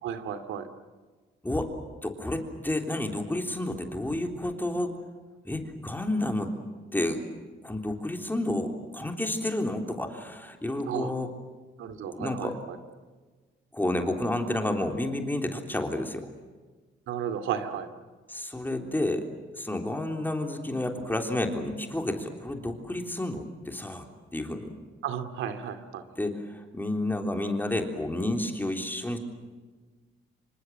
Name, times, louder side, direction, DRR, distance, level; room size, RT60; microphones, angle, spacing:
voice 1, 0.0-0.7 10.9-11.1 11.8-12.8 17.1-17.9 25.0-26.0, right 8 dB, 85° right, 9 dB, 2.5 m, -33 dB
voice 2, 2.0-5.0 5.4-6.5 6.9-7.2 7.6-11.3 12.1-12.6 13.7-16.3 18.3-19.3 19.6-24.1 24.3-24.7 26.2-29.2, left 1 dB, 10° left, 4 dB, 3.5 m, -30 dB
27.0 x 25.0 x 7.6 m, 1.4 s
cardioid pair, 90°, 20 cm